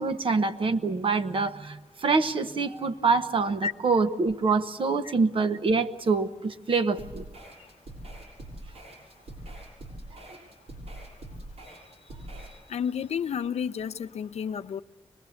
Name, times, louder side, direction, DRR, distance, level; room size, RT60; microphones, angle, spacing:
voice 1, 0.0-7.2, right 4 dB, 55° right, 9 dB, 1.0 m, -25 dB
sound 1, 7.0-12.6, right 1 dB, 75° right, 7.1 m, -43 dB
voice 2, 12.7-14.8, left 7 dB, 90° left, 11 dB, 0.6 m, -31 dB
24.0 x 20.5 x 7.1 m, 1.3 s
wide cardioid pair, 160°, 11 cm